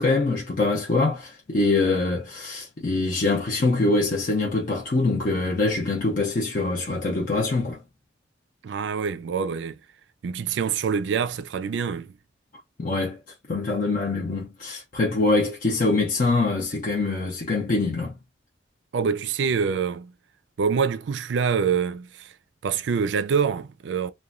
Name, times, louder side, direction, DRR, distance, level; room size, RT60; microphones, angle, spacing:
voice 1, 0.0-7.8 12.8-13.2 13.5-18.1, left 3 dB, 45° left, 0.5 m, -24 dB
voice 2, 8.6-9.8 10.2-12.1 18.9-20.1 20.6-22.3 22.6-24.1, right 6 dB, 75° right, 0.4 m, -25 dB
2.9 x 2.2 x 2.4 m
head